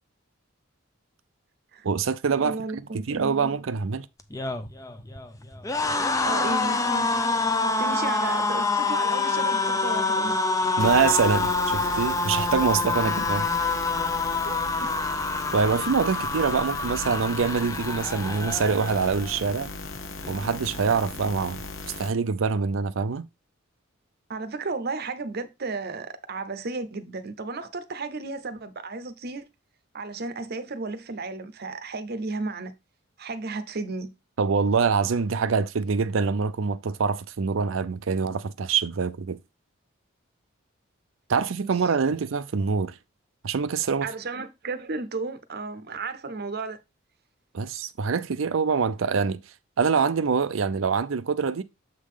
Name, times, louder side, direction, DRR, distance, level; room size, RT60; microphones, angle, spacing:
voice 1, 1.8-4.1 10.8-13.5 15.5-19.7 20.3-21.6 22.0-23.3 34.4-39.4 41.3-42.9 43.4-44.1 47.5-49.4 49.8-51.6, right 5 dB, 75° right, 0.5 m, -25 dB
voice 2, 2.4-3.6 6.2-7.1 7.8-10.4 14.4-14.6 24.3-29.4 29.9-32.7 33.2-34.1 41.6-41.8 44.0-46.8, right 3 dB, 50° right, 0.8 m, -33 dB
sound 1, 4.2-19.4 19.7-20.0 20.2-21.0, left 3 dB, 15° left, 0.6 m, -27 dB
sound 2, 10.8-22.1, left 3 dB, 70° left, 1.0 m, -37 dB
7.3 x 3.8 x 4.9 m
head